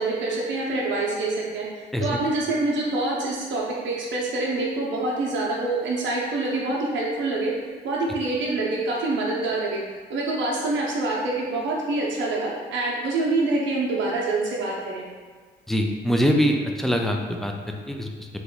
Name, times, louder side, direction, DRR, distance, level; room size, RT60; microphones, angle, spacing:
voice 1, 0.0-1.7 2.0-7.5 7.8-9.8 10.1-15.0, right 2 dB, 70° right, -4 dB, 0.6 m, -26 dB
voice 2, 15.7-18.3, equal, ahead, 2 dB, 0.3 m, -24 dB
3.0 x 2.2 x 3.8 m, 1.5 s
cardioid pair, 90°, 20 cm